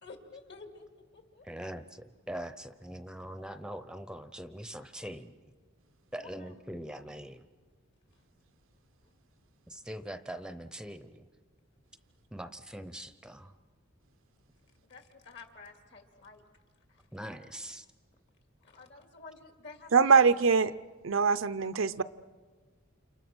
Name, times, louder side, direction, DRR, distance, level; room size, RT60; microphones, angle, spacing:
voice 1, 0.0-1.5 6.1-6.6 14.8-16.4 16.9-17.0 18.6-20.3, left 4 dB, 60° left, 2.7 m, -51 dB
voice 2, 1.5-5.3 6.1-7.4 9.7-11.2 12.3-13.5 17.1-17.8, right 1 dB, 5° right, 0.7 m, -42 dB
voice 3, 19.9-20.7 21.0-22.0, right 5 dB, 75° right, 0.7 m, -23 dB
30.0 x 28.0 x 6.2 m
head